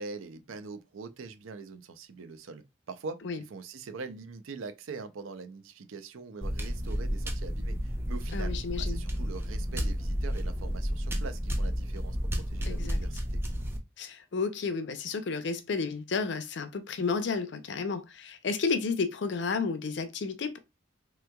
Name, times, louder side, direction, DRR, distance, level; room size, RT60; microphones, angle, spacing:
voice 1, 0.0-3.2 3.5-13.4, right 4 dB, 90° right, 0.5 m, -43 dB
sound 1, 6.4-13.8, equal, 10° right, 0.4 m, -31 dB
voice 2, 8.3-9.0 12.6-13.0 14.0-20.6, left 4 dB, 60° left, 0.5 m, -32 dB
3.3 x 3.0 x 2.2 m
head